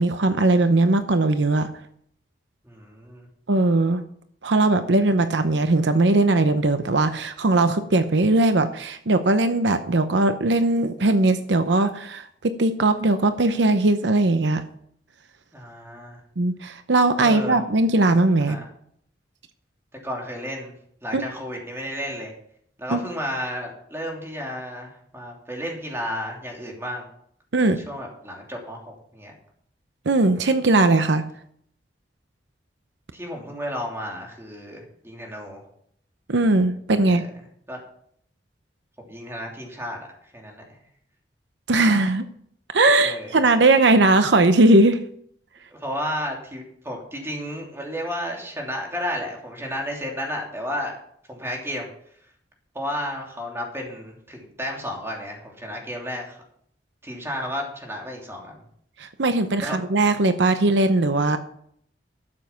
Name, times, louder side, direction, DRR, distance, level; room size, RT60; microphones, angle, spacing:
voice 1, 0.0-1.7 3.5-4.0 4.4-14.6 16.4-18.6 21.1-21.3 22.9-23.0 27.5-27.8 30.1-31.2 36.3-37.2 41.7-42.2 42.7-45.0 59.0-61.4, right 2 dB, 80° right, 10 dB, 0.8 m, -19 dB
voice 2, 2.6-3.3 15.5-16.2 17.2-17.6 18.4-18.6 20.0-20.7 21.0-22.3 22.8-27.1 27.8-29.3 33.1-35.6 37.0-37.3 37.7-37.8 39.1-40.0 40.3-40.8 43.0-43.4 45.7-50.9 51.3-51.9 52.7-56.4 57.0-58.6 59.6-59.8, equal, 15° right, 0 dB, 2.9 m, -32 dB
12.0 x 7.3 x 5.8 m, 0.66 s
head